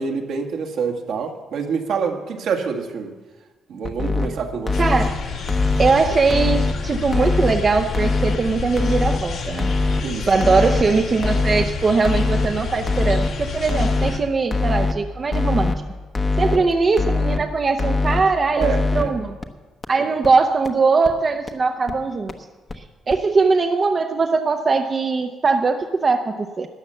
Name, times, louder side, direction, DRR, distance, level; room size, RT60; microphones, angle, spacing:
voice 1, 0.0-3.1 3.7-4.9 10.0-10.3 10.6-10.8 16.5-16.7 18.6-19.2, right 5 dB, 75° right, 3 dB, 1.7 m, -26 dB
sound 1, 3.8-4.3 4.7-5.1 5.5-5.9 6.3-6.7 7.1-7.5 7.9-8.4 8.8-9.2 9.6-10.0 10.4-10.8 11.2-11.6 12.0-12.5 12.9-13.3 13.7-14.1 14.5-14.9 15.3-15.8 16.1-16.6 17.0-17.4 17.8-18.2 18.6-19.0 19.4-19.5 19.8-19.9 20.2-20.3 20.7-20.8 21.0-21.1 21.5-21.6 21.9-22.0 22.3-22.4 22.7-22.8 23.1-23.2, left 3 dB, 35° left, 1.0 m, -21 dB
sound 2, 4.7-14.2, left 5 dB, 75° left, 2.3 m, -30 dB
voice 2, 4.8-5.1 5.8-9.7 10.3-15.7 16.4-19.4 19.9-22.3 22.8-26.7, right 4 dB, 40° right, 5 dB, 0.7 m, -20 dB
13.0 x 9.7 x 6.9 m, 1.3 s
cardioid pair, 90°, 0 cm